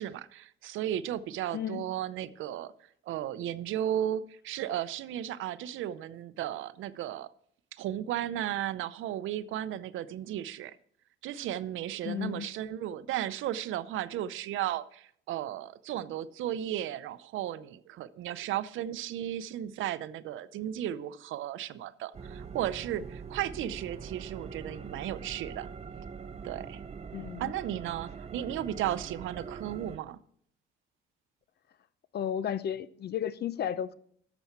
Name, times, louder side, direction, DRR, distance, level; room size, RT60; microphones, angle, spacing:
voice 1, 0.0-2.7 3.1-7.3 7.7-10.8 11.2-25.7 26.4-26.8 27.4-30.2, right 11 dB, 80° right, 0.6 m, -35 dB
voice 2, 1.5-1.9 12.0-12.5 27.1-27.5 32.1-33.9, left 9 dB, 55° left, 0.6 m, -33 dB
sound 1, 22.1-30.0, right 6 dB, 35° right, 0.6 m, -43 dB
11.5 x 7.0 x 4.3 m
cardioid pair, 90°, 20 cm